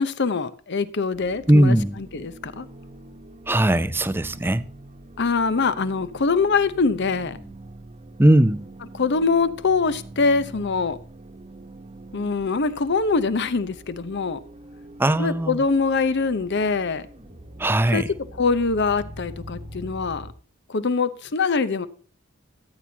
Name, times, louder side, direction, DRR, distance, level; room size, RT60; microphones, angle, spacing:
voice 1, 0.0-2.7 5.2-7.4 9.0-11.0 12.1-14.4 15.2-17.1 17.9-18.1 18.4-20.3 20.7-21.9, left 4 dB, 55° left, 0.8 m, -23 dB
sound 1, 1.1-20.3, right 1 dB, 30° right, 1.1 m, -44 dB
voice 2, 1.5-2.0 3.5-4.6 8.2-8.6 15.0-15.6 17.6-18.1, right 1 dB, 10° right, 0.5 m, -19 dB
14.0 x 8.6 x 2.8 m
head